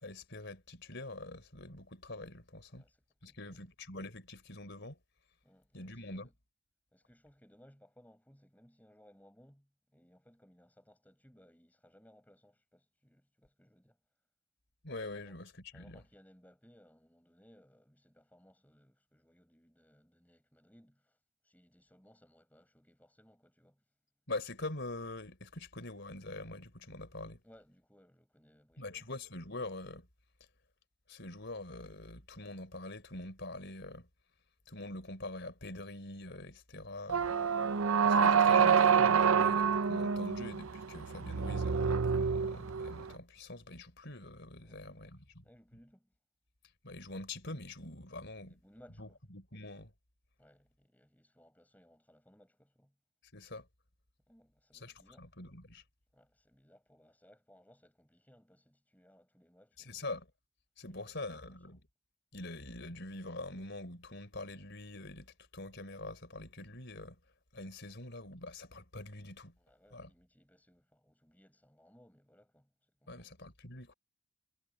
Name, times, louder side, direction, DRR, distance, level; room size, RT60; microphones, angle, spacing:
voice 1, 0.0-2.8 3.2-5.0 5.7-6.3 14.8-16.0 24.3-27.4 28.8-30.1 31.1-34.1 34.7-37.3 38.0-45.4 46.8-48.5 49.0-49.9 53.3-53.7 54.7-55.8 59.9-60.3 60.8-61.8 62.3-67.2 67.5-69.5 69.9-70.1 73.1-73.9, left 2 dB, 55° left, 4.0 m, -45 dB
voice 2, 3.2-3.7 5.4-6.3 6.9-14.0 15.1-15.4 15.7-21.2 21.4-23.8 27.4-29.1 44.6-45.2 45.4-46.2 48.4-49.2 50.4-53.0 54.3-55.3 56.1-60.1 60.9-61.8 69.6-73.3, equal, 10° left, 7.2 m, -64 dB
sound 1, 37.1-43.1, right 6 dB, 85° right, 0.7 m, -27 dB
head